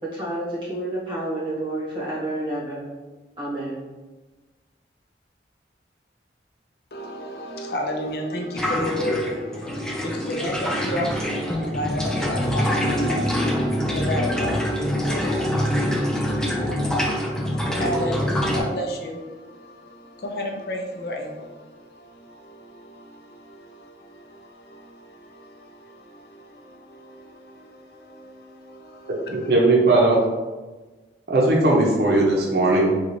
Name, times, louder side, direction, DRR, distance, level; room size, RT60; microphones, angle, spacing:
voice 1, 0.0-2.9 3.4-3.8, right 1 dB, 30° right, 1.2 m, -29 dB
voice 2, 6.9-29.5, left 1 dB, 60° left, 0.5 m, -33 dB
sound 1, 8.6-18.6, equal, 5° left, 0.3 m, -24 dB
voice 3, 29.3-30.2 31.3-33.0, right 2 dB, 65° right, 0.7 m, -18 dB
3.8 x 2.4 x 3.0 m
head